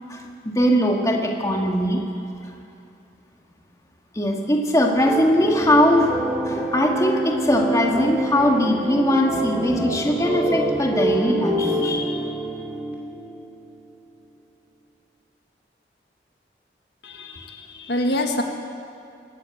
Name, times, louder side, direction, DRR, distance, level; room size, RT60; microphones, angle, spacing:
voice 1, 0.1-2.0 4.1-12.2, equal, 20° left, 1 dB, 1.8 m, -21 dB
sound 1, 5.0-13.8, right 1 dB, 10° right, 2.8 m, -26 dB
voice 2, 17.0-18.4, left 1 dB, 65° left, 4 dB, 1.7 m, -26 dB
21.5 x 14.0 x 9.1 m, 2.5 s
head